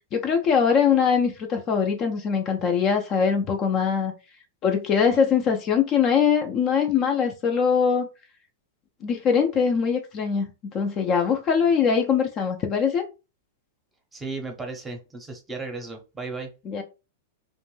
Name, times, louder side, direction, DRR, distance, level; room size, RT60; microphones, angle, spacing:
voice 1, 0.1-4.1 4.6-8.1 9.0-13.0 16.7-16.8, left 6 dB, 35° left, 0.4 m, -22 dB
voice 2, 14.1-16.5, right 3 dB, 10° right, 0.7 m, -35 dB
2.5 x 2.1 x 3.1 m
hypercardioid pair, 130°, 0 cm